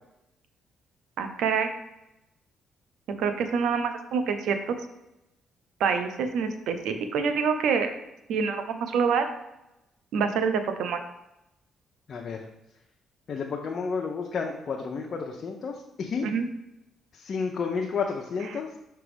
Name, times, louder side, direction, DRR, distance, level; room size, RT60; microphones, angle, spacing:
voice 1, 1.2-1.7 3.2-4.7 5.8-7.9 8.3-9.3 10.1-11.0 16.2-16.4, right 6 dB, 80° right, 8 dB, 0.6 m, -26 dB
voice 2, 12.1-12.4 13.3-16.3 17.1-18.7, left 5 dB, 50° left, 0 dB, 0.6 m, -31 dB
6.0 x 3.4 x 5.0 m, 0.90 s
cardioid pair, 90°, 0 cm